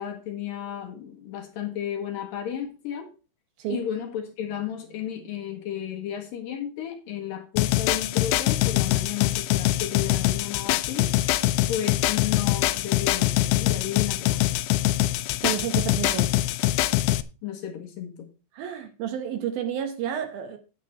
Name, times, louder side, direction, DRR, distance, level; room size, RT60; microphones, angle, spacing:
voice 1, 0.0-3.1 3.7-11.1 11.7-14.6 17.4-18.3, left 9 dB, 65° left, 2.6 m, -33 dB
sound 1, 7.6-17.2, left 16 dB, 80° left, 2.6 m, -23 dB
voice 2, 15.4-16.3 18.6-20.6, right 9 dB, 70° right, 2.7 m, -30 dB
9.6 x 8.2 x 4.3 m
omnidirectional pair, 4.8 m